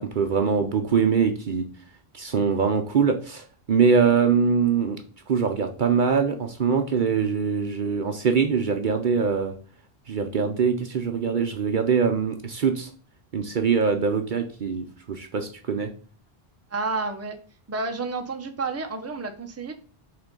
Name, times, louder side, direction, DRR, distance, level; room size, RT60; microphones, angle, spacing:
voice 1, 0.0-1.6 2.1-5.0 5.3-9.5 10.1-12.9 13.3-15.9, right 6 dB, 55° right, 6 dB, 0.8 m, -23 dB
voice 2, 16.7-17.4 17.7-19.8, right 3 dB, 15° right, 5 dB, 0.7 m, -30 dB
5.7 x 3.7 x 5.2 m, 0.41 s
omnidirectional pair, 1.1 m